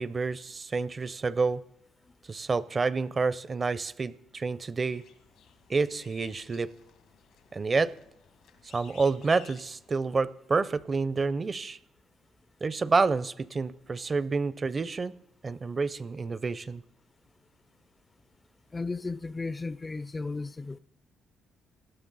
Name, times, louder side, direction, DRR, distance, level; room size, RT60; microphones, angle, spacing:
voice 1, 0.0-1.6 2.3-5.0 5.7-6.7 7.5-7.9 8.7-11.8 12.6-15.2 15.4-16.8, right 4 dB, 35° right, 0.6 m, -28 dB
sound 1, 4.9-10.0, left 8 dB, 90° left, 1.9 m, -56 dB
voice 2, 18.7-20.8, left 3 dB, 25° left, 0.4 m, -34 dB
17.5 x 12.5 x 4.1 m
cardioid pair, 90°, 0 cm